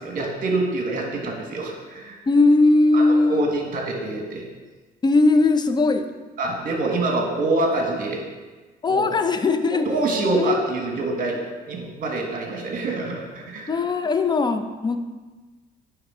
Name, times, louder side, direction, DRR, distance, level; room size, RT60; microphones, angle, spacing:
voice 1, 0.0-2.2 2.9-4.4 6.4-8.2 8.9-9.1 9.8-11.4 11.6-13.7, right 2 dB, 50° right, 1 dB, 1.5 m, -26 dB
voice 2, 2.3-3.5 5.0-6.1 8.8-9.9 10.4-10.7 13.7-15.0, left 3 dB, 25° left, 8 dB, 0.5 m, -19 dB
8.9 x 3.6 x 3.7 m, 1.3 s
cardioid pair, 100°, 18 cm